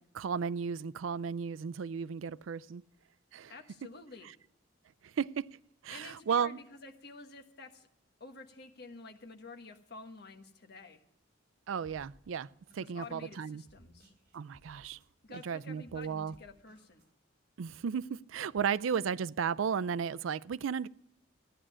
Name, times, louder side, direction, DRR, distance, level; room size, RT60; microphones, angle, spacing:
voice 1, 0.0-2.8 3.3-3.5 5.0-5.5 5.8-6.6 11.7-12.5 12.7-13.6 14.3-15.0 15.3-16.3 17.6-20.9, right 7 dB, 90° right, 0.4 m, -34 dB
voice 2, 3.5-4.3 5.9-7.9 8.2-11.0 12.8-14.1 15.2-17.0, left 3 dB, 55° left, 1.4 m, -50 dB
sound 1, 11.8-17.1, right 1 dB, 55° right, 3.0 m, -63 dB
14.5 x 10.0 x 6.2 m
head